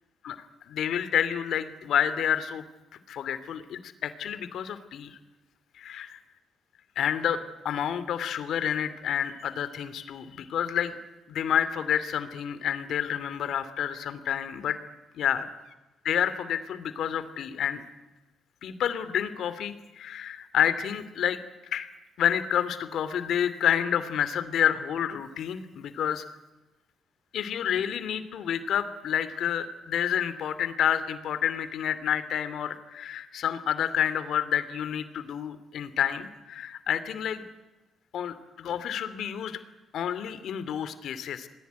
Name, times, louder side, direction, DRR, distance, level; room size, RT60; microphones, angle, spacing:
voice 1, 0.7-2.6 3.1-5.2 5.8-6.1 7.0-7.4 7.6-11.0 11.3-14.8 15.1-15.4 16.0-17.8 18.6-21.4 21.7-21.9 22.2-26.2 27.3-37.5 38.1-39.6 39.9-41.5, left 9 dB, 70° left, 13 dB, 2.7 m, -29 dB
27.5 x 20.5 x 9.5 m, 1.1 s
cardioid pair, 90°, 0 cm